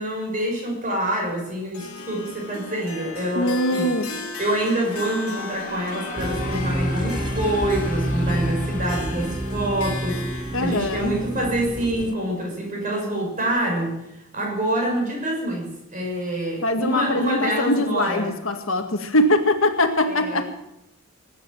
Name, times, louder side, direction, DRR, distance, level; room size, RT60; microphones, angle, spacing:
voice 1, 0.0-3.9 4.4-13.9 14.3-18.3 20.0-20.5, right 1 dB, 35° right, 0 dB, 6.0 m, -26 dB
Harp, 1.7-13.0, left 3 dB, 90° left, 2.4 m, -37 dB
voice 2, 3.3-4.1 10.5-11.2 16.6-20.4, left 1 dB, 70° left, 6 dB, 1.8 m, -22 dB
sound 1, 4.6-11.3, left 3 dB, 40° left, 2.5 m, -38 dB
sound 2, 6.2-12.1, right 1 dB, 20° right, 0.5 m, -28 dB
20.0 x 9.4 x 7.6 m, 0.85 s
head